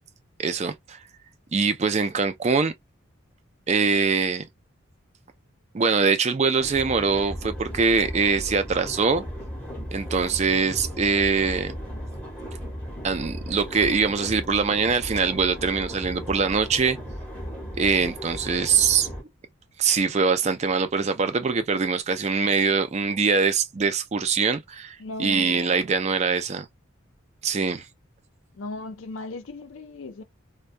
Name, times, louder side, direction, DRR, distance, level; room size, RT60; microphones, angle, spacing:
voice 1, 0.4-1.0 1.5-2.7 3.7-4.5 5.7-9.2 9.9-11.7 13.0-17.0 17.8-19.1 19.8-26.7 27.4-27.9, right 5 dB, 35° right, 0.4 m, -23 dB
sound 1, 6.6-19.2, equal, 5° left, 0.8 m, -36 dB
voice 2, 25.0-25.8 28.5-30.2, left 2 dB, 75° left, 0.5 m, -36 dB
2.2 x 2.2 x 2.5 m
head